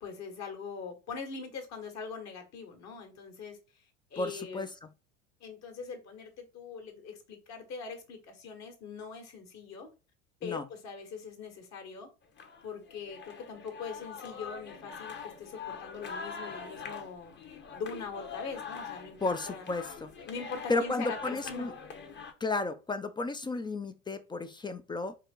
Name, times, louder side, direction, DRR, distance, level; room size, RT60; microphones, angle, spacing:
voice 1, 0.0-3.6 4.1-4.7 5.4-9.9 10.4-12.1 12.6-17.4 17.7-19.7 20.3-21.7, left 5 dB, 50° left, 1.7 m, -42 dB
voice 2, 4.2-4.7 10.4-10.7 19.2-20.1 20.7-21.7 22.4-25.1, left 3 dB, 15° left, 0.3 m, -33 dB
sound 1, 12.4-22.3, left 5 dB, 30° left, 1.0 m, -44 dB
4.5 x 2.9 x 3.8 m
supercardioid pair, 100°, 36 cm